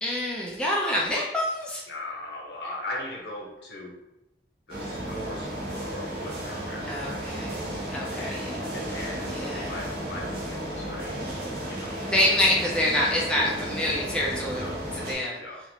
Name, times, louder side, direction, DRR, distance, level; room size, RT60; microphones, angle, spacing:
voice 1, 0.0-1.8 6.9-7.6 7.9-8.7 9.3-9.7 12.0-14.6 14.9-15.4, left 1 dB, 5° left, -4 dB, 0.4 m, -26 dB
voice 2, 1.9-4.0 4.7-7.3 8.0-8.4 8.7-11.4 11.7-11.9 14.5-14.7 15.4-15.6, left 1 dB, 75° left, -3 dB, 0.9 m, -39 dB
sound 1, 4.7-15.1, right 1 dB, 55° right, 0.8 m, -34 dB
3.0 x 2.5 x 2.7 m, 0.89 s
head